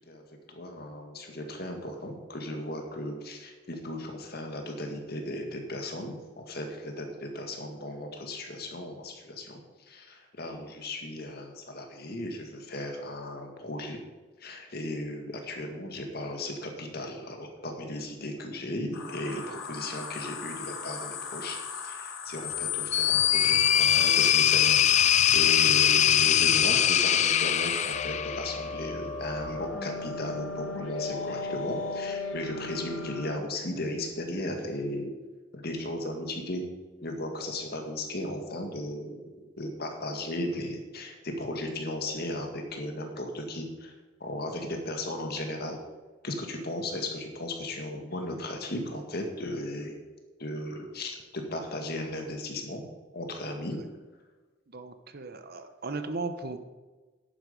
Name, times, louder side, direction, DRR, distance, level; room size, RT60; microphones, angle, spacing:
voice 1, 0.5-14.0 14.4-35.1 35.5-36.6 37.0-43.9 44.2-45.8 46.2-50.0 50.4-52.8 53.1-53.8, left 1 dB, 50° left, 4 dB, 2.0 m, -36 dB
sound 1, 18.9-33.4, left 4 dB, 85° left, 1.6 m, -37 dB
sound 2, 22.5-28.7, left 10 dB, 35° left, 0.3 m, -22 dB
voice 2, 54.7-56.6, right 3 dB, 50° right, 9 dB, 0.9 m, -36 dB
11.0 x 9.4 x 5.3 m, 1.3 s
head